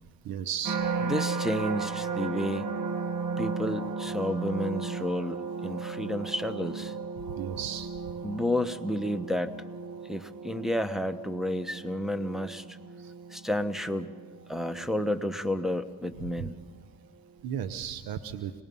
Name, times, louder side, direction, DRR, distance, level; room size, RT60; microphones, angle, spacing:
voice 1, 0.2-0.8 7.4-7.9 13.0-13.1 16.4-16.5 17.4-18.5, right 9 dB, 90° right, 11 dB, 0.8 m, -34 dB
sound 1, 0.6-15.8 16.4-16.8, right 4 dB, 65° right, 1.8 m, -35 dB
voice 2, 1.0-2.7 3.4-6.9 8.2-9.6 10.1-12.8 13.3-14.1 14.5-16.6, left 1 dB, ahead, 10 dB, 1.1 m, -31 dB
25.5 x 19.5 x 5.4 m, 1.4 s
cardioid pair, 65°, 35 cm